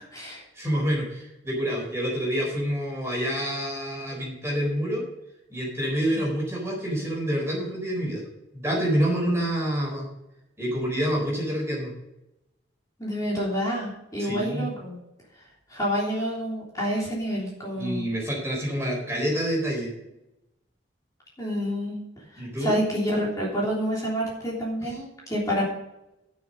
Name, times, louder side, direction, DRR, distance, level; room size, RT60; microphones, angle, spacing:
voice 1, 0.0-0.4 6.1-6.2 13.0-15.0 15.4-15.5 15.7-18.1 21.4-22.0 22.3-25.6, equal, 20° left, -5 dB, 3.3 m, -28 dB
voice 2, 0.5-5.1 5.5-8.2 8.5-10.1 10.6-11.9 14.2-14.7 17.8-19.9 22.4-22.8 24.8-25.0, equal, 15° right, -3 dB, 4.0 m, -27 dB
12.5 x 6.7 x 5.2 m, 0.91 s
head